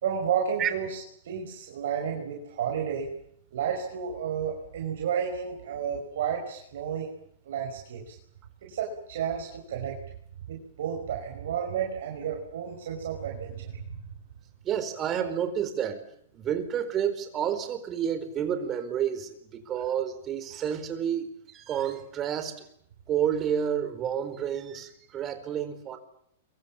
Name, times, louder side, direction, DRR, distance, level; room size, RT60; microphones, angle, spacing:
voice 1, 0.0-3.1 3.5-7.1 7.4-8.2 8.6-10.0 10.5-14.0, right 7 dB, 70° right, 1 dB, 5.4 m, -32 dB
voice 2, 14.6-16.0 16.3-22.6 23.1-26.0, right 9 dB, 30° right, 9 dB, 4.5 m, -30 dB
27.5 x 24.0 x 7.4 m, 0.68 s
hypercardioid pair, 125°, 0 cm